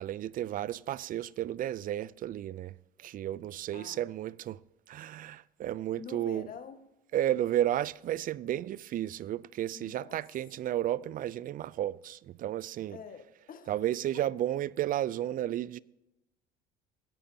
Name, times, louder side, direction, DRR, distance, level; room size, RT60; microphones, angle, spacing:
voice 1, 0.0-4.6 4.9-6.5 7.1-13.0 13.7-15.8, right 12 dB, 40° right, 0.4 m, -33 dB
voice 2, 3.7-4.0 6.0-6.8 9.7-10.2 12.9-13.7, left 7 dB, 40° left, 1.4 m, -47 dB
16.5 x 10.0 x 2.8 m
hypercardioid pair, 75°, 21 cm